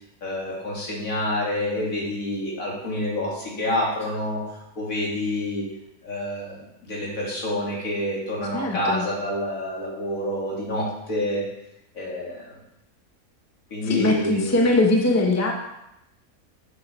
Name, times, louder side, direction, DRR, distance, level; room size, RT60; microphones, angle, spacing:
voice 1, 0.2-5.7 6.0-11.5 11.9-12.5 13.7-14.5, left 1 dB, 65° left, -4 dB, 2.7 m, -28 dB
voice 2, 8.5-9.1 13.8-15.5, left 2 dB, 15° left, 1 dB, 0.9 m, -21 dB
8.0 x 7.2 x 4.4 m, 0.86 s
omnidirectional pair, 1.5 m